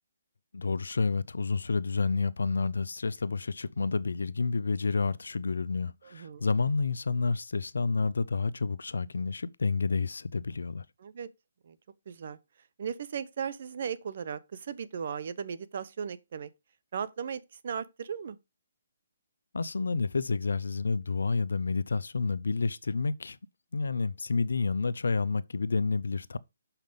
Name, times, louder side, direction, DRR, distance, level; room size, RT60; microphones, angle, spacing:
voice 1, 0.5-10.8 19.5-23.4 23.7-26.4, left 4 dB, 85° left, 0.6 m, -29 dB
voice 2, 6.0-6.5 11.0-11.3 11.6-11.8 12.1-12.4 12.8-16.5 16.9-18.4, right 7 dB, 55° right, 0.9 m, -37 dB
6.5 x 5.8 x 5.3 m
hypercardioid pair, 150°, 0 cm